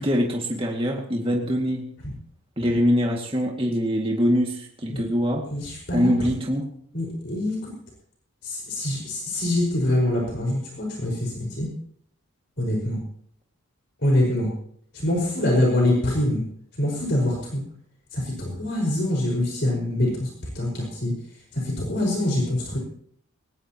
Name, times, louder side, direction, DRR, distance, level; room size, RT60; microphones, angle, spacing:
voice 1, 0.0-1.8 2.6-5.4 5.9-6.7, equal, 25° right, 0 dB, 2.2 m, -23 dB
voice 2, 5.5-6.1 6.9-7.7 8.4-11.7 12.6-13.0 14.0-14.5 14.9-16.4 16.8-17.6 18.1-20.3 20.6-21.1 21.5-22.8, left 1 dB, 50° left, -1 dB, 5.3 m, -24 dB
19.5 x 19.0 x 3.0 m, 0.63 s
head